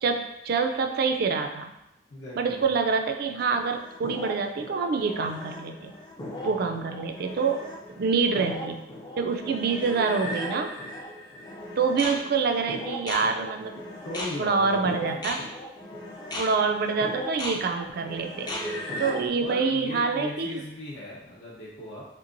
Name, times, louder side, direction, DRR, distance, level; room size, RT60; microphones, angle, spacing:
voice 1, 0.0-1.7 2.4-5.9 6.4-7.7 7.9-8.8 9.2-10.7 11.8-13.8 14.4-15.4 16.3-18.5 19.0-20.6, right 4 dB, 55° right, 5 dB, 0.3 m, -26 dB
voice 2, 2.1-2.7 6.4-6.7 14.0-15.3 18.4-19.0 19.4-22.1, left 1 dB, 70° left, -6 dB, 0.7 m, -38 dB
sound 1, 3.4-19.3, left 1 dB, 25° left, 0.4 m, -37 dB
3.5 x 2.9 x 2.5 m, 0.88 s
head